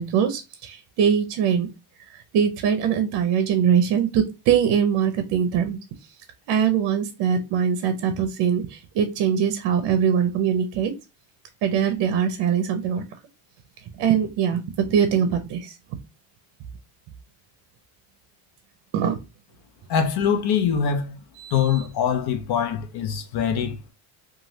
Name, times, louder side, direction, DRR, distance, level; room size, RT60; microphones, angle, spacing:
voice 1, 0.0-1.7 2.3-5.8 6.5-10.9 11.6-13.0 14.0-15.7 18.9-19.2 21.4-21.8, right 8 dB, 60° right, 0.6 m, -22 dB
voice 2, 19.9-21.2 21.5-23.9, left 7 dB, 50° left, 0.6 m, -23 dB
3.0 x 2.4 x 2.7 m
cardioid pair, 120°, 50 cm